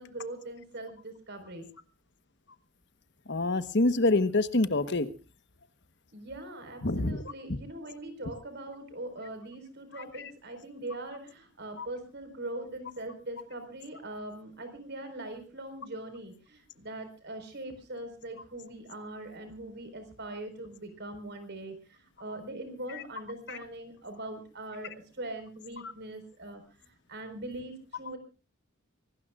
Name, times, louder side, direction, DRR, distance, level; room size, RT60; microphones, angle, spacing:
voice 1, 0.0-1.7 6.1-28.2, right 1 dB, 55° right, 8 dB, 4.7 m, -41 dB
voice 2, 3.3-5.1 6.8-7.2 11.8-11.9 22.9-23.0 23.5-23.6, left 2 dB, 60° left, 12 dB, 1.2 m, -26 dB
25.0 x 19.0 x 2.5 m, 0.34 s
head